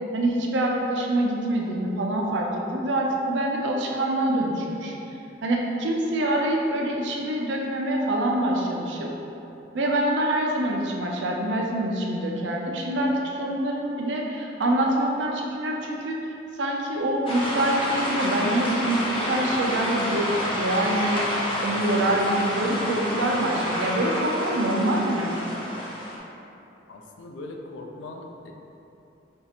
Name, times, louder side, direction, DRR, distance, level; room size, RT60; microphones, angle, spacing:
voice 1, 0.1-5.0 5.4-9.1 9.7-25.4, right 1 dB, 70° right, 0 dB, 0.5 m, -25 dB
sound 1, 17.3-26.2, equal, 30° left, 0.6 m, -29 dB
voice 2, 26.9-28.5, left 2 dB, 80° left, 2 dB, 0.4 m, -40 dB
5.3 x 2.4 x 2.8 m, 2.9 s
head